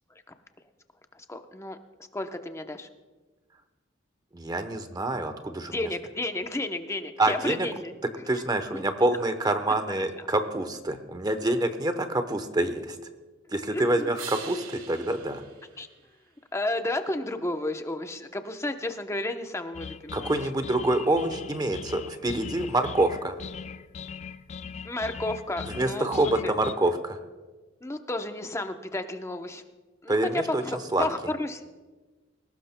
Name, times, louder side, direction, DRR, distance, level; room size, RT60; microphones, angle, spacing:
voice 1, 1.1-1.8 2.1-2.9 5.6-7.9 8.7-8.8 9.9-10.0 13.7-14.1 15.8-15.9 16.5-20.3 24.8-26.2 26.4-26.5 27.8-29.6 30.0-31.7, left 2 dB, 15° left, 6 dB, 0.8 m, -32 dB
voice 2, 4.3-5.7 7.2-7.7 8.3-13.0 13.5-15.4 20.1-23.3 25.7-27.2 30.1-30.6 30.9-31.1, right 2 dB, 20° right, 8 dB, 0.8 m, -26 dB
sound 1, 14.2-16.7 22.5-26.5, right 7 dB, 85° right, 1.7 m, -48 dB
sound 2, 19.7-26.7, left 6 dB, 35° left, 0.3 m, -40 dB
21.0 x 17.5 x 2.2 m, 1.2 s
head